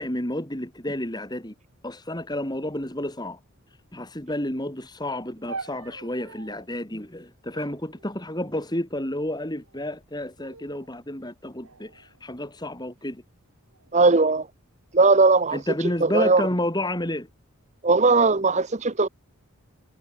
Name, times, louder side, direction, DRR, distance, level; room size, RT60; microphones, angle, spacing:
voice 1, 0.0-1.5 1.8-3.4 3.9-13.2 15.5-17.3, left 1 dB, 20° left, 3.5 m, -30 dB
sound 1, 5.5-6.7 7.5-8.7 9.5-10.0 10.4-10.9 11.6-12.9 13.7-14.1, right 4 dB, 80° right, 4.2 m, -44 dB
voice 2, 13.9-14.5 14.9-15.6 16.0-16.4 17.8-19.1, right 3 dB, 30° right, 0.9 m, -18 dB
head